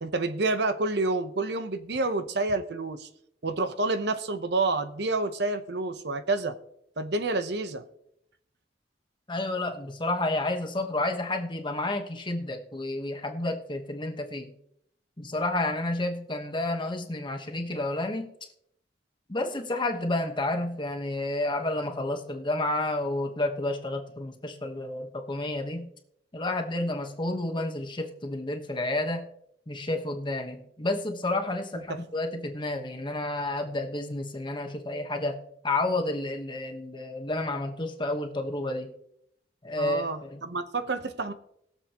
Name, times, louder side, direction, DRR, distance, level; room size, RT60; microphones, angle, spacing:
voice 1, 0.0-3.1 3.4-6.6 7.0-7.8 31.9-32.0 39.8-41.3, right 3 dB, 65° right, 0.9 m, -28 dB
voice 2, 9.3-14.5 15.2-18.3 19.3-25.9 26.3-29.3 29.7-35.4 35.6-38.9 39.6-40.4, left 2 dB, 25° left, 1.2 m, -30 dB
20.5 x 7.4 x 3.0 m
head